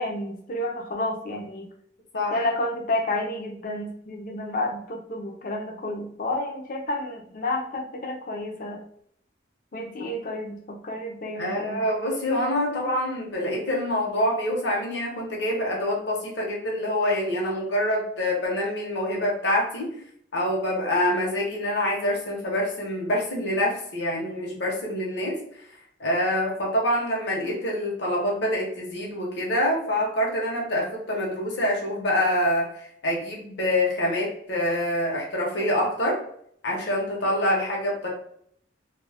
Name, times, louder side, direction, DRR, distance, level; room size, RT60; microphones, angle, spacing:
voice 1, 0.0-1.7 2.3-8.8 9.7-11.9, left 1 dB, 45° left, 2 dB, 0.4 m, -30 dB
voice 2, 11.3-19.9 20.3-25.4 26.0-36.2 36.6-38.1, left 1 dB, 65° left, -2 dB, 0.8 m, -26 dB
2.3 x 2.1 x 3.3 m, 0.66 s
head